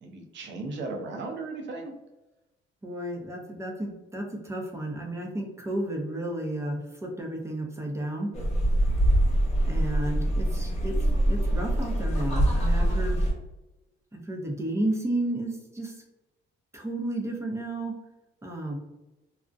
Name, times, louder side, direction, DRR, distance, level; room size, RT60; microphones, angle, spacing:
voice 1, 0.0-1.9, right 3 dB, 65° right, 3 dB, 0.6 m, -36 dB
voice 2, 2.8-8.3 9.6-10.9 11.3-13.3 14.1-16.0 16.7-18.0 18.4-18.8, right 1 dB, 15° right, 1 dB, 0.6 m, -32 dB
sound 1, 8.3-13.3, right 1 dB, 30° left, 1.0 m, -24 dB
2.4 x 2.1 x 2.5 m, 1.0 s
cardioid pair, 90°, 20 cm